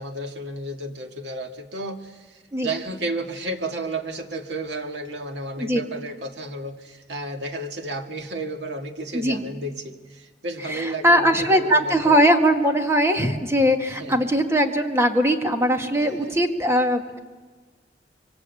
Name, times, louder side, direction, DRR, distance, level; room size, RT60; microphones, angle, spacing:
voice 1, 0.0-12.3 13.9-14.3 16.0-16.4, right 2 dB, 80° right, 4 dB, 2.1 m, -33 dB
voice 2, 10.7-17.2, equal, 15° right, 4 dB, 1.9 m, -20 dB
25.5 x 24.0 x 8.4 m, 1.4 s
head